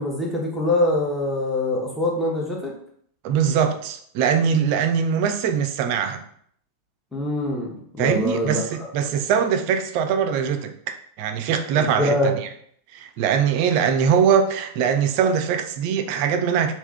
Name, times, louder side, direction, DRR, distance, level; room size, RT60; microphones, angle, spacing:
voice 1, 0.0-2.7 7.1-8.6 11.8-12.3, left 1 dB, 5° left, 0.9 m, -24 dB
voice 2, 3.2-6.2 8.0-12.3 12.9-16.8, right 7 dB, 45° right, 0.4 m, -22 dB
3.4 x 2.5 x 3.3 m
figure-of-eight pair, 90°, 0 cm